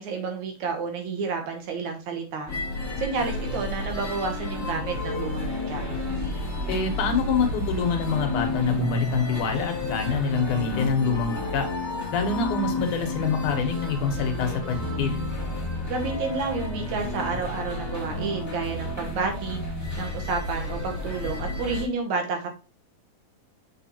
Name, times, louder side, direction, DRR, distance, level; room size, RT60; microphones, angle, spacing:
voice 1, 0.0-2.5 3.0-5.8 15.9-19.6 20.0-22.5, right 4 dB, 70° right, 4 dB, 2.3 m, -30 dB
sound 1, 2.5-21.8, left 2 dB, 5° left, 1.3 m, -31 dB
voice 2, 6.7-11.7 12.1-15.2, left 5 dB, 70° left, 4 dB, 2.5 m, -26 dB
6.8 x 6.5 x 2.8 m, 0.32 s
omnidirectional pair, 3.8 m